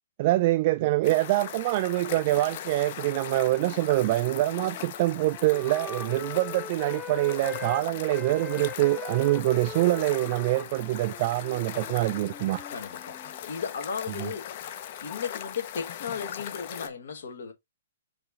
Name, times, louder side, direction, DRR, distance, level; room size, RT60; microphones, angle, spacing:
voice 1, 0.2-12.6 14.1-14.3, right 18 dB, 40° right, 0.3 m, -25 dB
sound 1, 1.0-16.9, left 10 dB, 45° left, 0.7 m, -40 dB
Wind instrument woodwind instrument, 2.9-7.8 8.1-13.4, left 5 dB, 10° left, 0.7 m, -42 dB
voice 2, 12.7-14.7 15.0-17.5, left 6 dB, 65° left, 1.4 m, -35 dB
4.9 x 2.9 x 3.7 m
hypercardioid pair, 130°, 0 cm